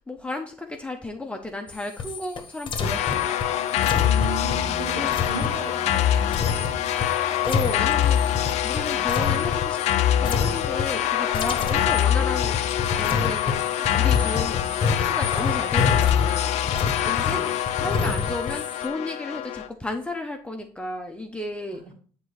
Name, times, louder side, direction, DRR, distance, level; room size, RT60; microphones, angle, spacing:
voice 1, 0.1-3.4 5.0-5.1 7.4-8.2 8.6-9.8 10.2-12.6 12.9-17.4 17.8-21.8, left 2 dB, 10° left, 3 dB, 0.9 m, -33 dB
sound 1, 1.7-10.0 10.2-11.1 11.3-18.9, left 5 dB, 35° left, 1.1 m, -29 dB
sound 2, 2.8-19.7, left 11 dB, 55° left, 0.5 m, -24 dB
voice 2, 4.0-6.8 8.9-9.1 11.6-11.9 17.0-17.5 18.0-18.3, right 2 dB, 40° right, 2 dB, 2.1 m, -37 dB
Bass guitar, 4.4-9.2 9.5-10.7, right 1 dB, 60° right, 2.7 m, -43 dB
7.9 x 3.8 x 4.4 m, 0.43 s
figure-of-eight pair, 55°, 14 cm